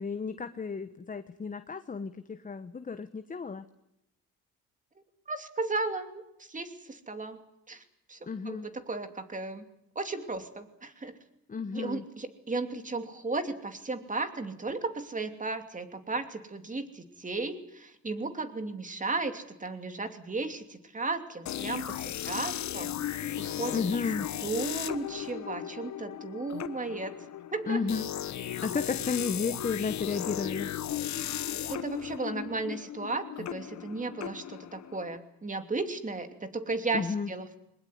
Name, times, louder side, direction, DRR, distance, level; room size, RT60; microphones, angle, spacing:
voice 1, 0.0-3.6 8.3-8.7 11.5-12.0 23.7-24.3 27.7-28.1 28.6-30.7 36.9-37.3, left 5 dB, 25° left, 10 dB, 1.1 m, -33 dB
voice 2, 5.3-7.4 7.7-7.8 8.1-9.6 9.9-11.2 11.7-23.8 24.4-27.1 27.5-27.8 31.7-37.5, right 3 dB, 25° right, 7 dB, 2.8 m, -35 dB
sound 1, 21.5-35.2, left 11 dB, 65° left, 1.2 m, -36 dB
22.0 x 20.0 x 9.5 m, 0.82 s
cardioid pair, 80°, 31 cm